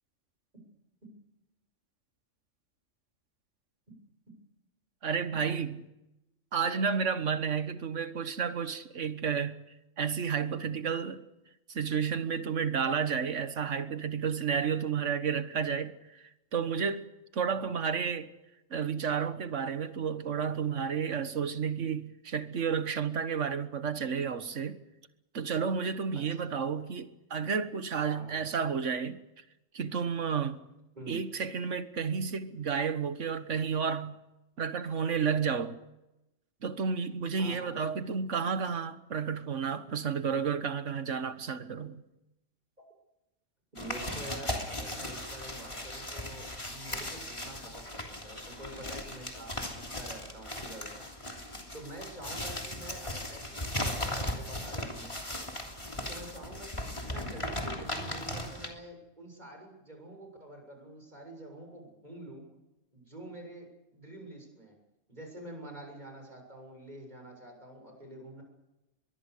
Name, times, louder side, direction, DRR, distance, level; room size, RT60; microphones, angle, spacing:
voice 1, 5.0-5.8 6.5-9.6 10.0-11.2 11.7-17.1 17.3-18.3 18.7-24.8 25.3-29.2 29.7-30.6 31.1-34.2 34.6-35.8 36.6-42.0, right 6 dB, 75° right, 1.7 m, -31 dB
voice 2, 26.1-26.5 28.1-28.4 31.0-31.2 37.4-37.8 43.7-51.0 51.7-55.2 56.1-62.5 62.9-64.7 65.1-68.4, right 1 dB, 35° right, 7.3 m, -47 dB
sound 1, 43.8-58.7, left 1 dB, 25° left, 3.2 m, -37 dB
23.0 x 22.5 x 6.6 m
omnidirectional pair, 1.3 m